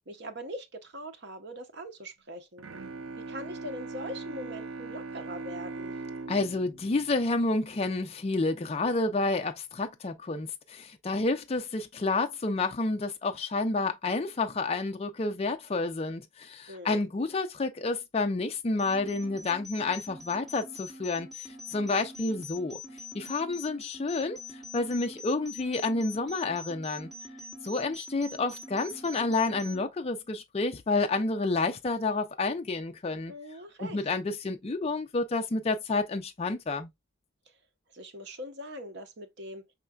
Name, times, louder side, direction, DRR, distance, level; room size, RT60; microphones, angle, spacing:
voice 1, 0.1-2.7 3.2-5.9 16.7-17.0 33.3-34.0 37.9-39.6, equal, 55° right, 0.8 m, -41 dB
Bowed string instrument, 2.6-8.2, right 3 dB, 80° right, 0.5 m, -41 dB
voice 2, 6.3-22.8 23.1-27.1 27.6-33.3 33.8-36.9, left 3 dB, 30° left, 0.4 m, -30 dB
sound 1, 18.8-29.8, left 3 dB, ahead, 2.4 m, -45 dB
5.7 x 3.2 x 2.3 m
head